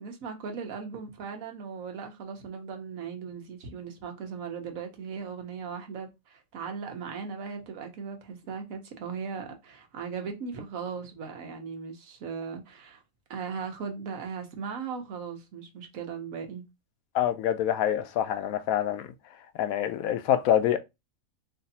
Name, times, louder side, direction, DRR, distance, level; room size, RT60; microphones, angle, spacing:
voice 1, 0.0-13.0 13.3-16.7, right 6 dB, 75° right, 1.3 m, -38 dB
voice 2, 17.1-19.1 19.5-20.8, left 10 dB, 80° left, 1.0 m, -26 dB
3.2 x 2.7 x 4.0 m
omnidirectional pair, 1.5 m